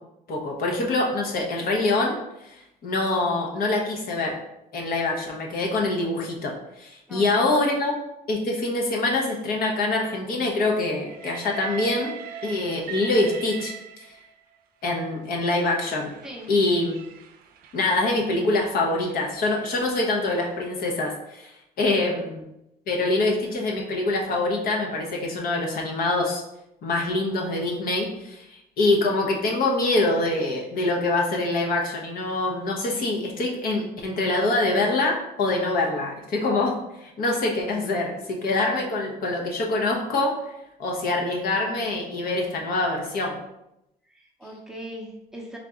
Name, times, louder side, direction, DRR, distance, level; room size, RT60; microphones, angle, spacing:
voice 1, 0.3-2.2 2.4-2.6 2.8-4.4 4.7-7.9 8.3-12.1 12.4-13.7 14.8-16.1 16.5-17.0 17.7-21.5 21.8-22.4 22.9-26.4 26.8-40.3 40.8-43.4, left 2 dB, 60° left, 0 dB, 0.9 m, -25 dB
voice 2, 7.1-7.5 14.2-14.3 16.2-16.5 21.9-22.2 44.0-45.6, equal, 5° right, -2 dB, 0.7 m, -40 dB
Train, 11.0-14.4 15.3-20.5, right 7 dB, 60° right, 0.5 m, -41 dB
3.8 x 2.8 x 3.6 m, 0.86 s
cardioid pair, 110°, 17 cm